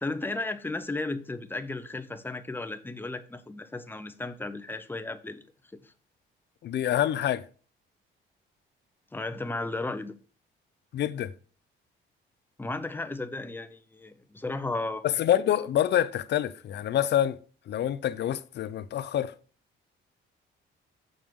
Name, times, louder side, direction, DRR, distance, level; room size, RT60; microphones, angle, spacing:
voice 1, 0.0-5.4 5.7-5.9 9.1-10.1 12.6-15.0, left 2 dB, 10° left, 0.7 m, -34 dB
voice 2, 6.6-7.4 10.9-11.3 15.0-17.4 17.7-19.3, left 11 dB, 60° left, 0.6 m, -26 dB
7.2 x 6.3 x 3.6 m
cardioid pair, 115°, 20 cm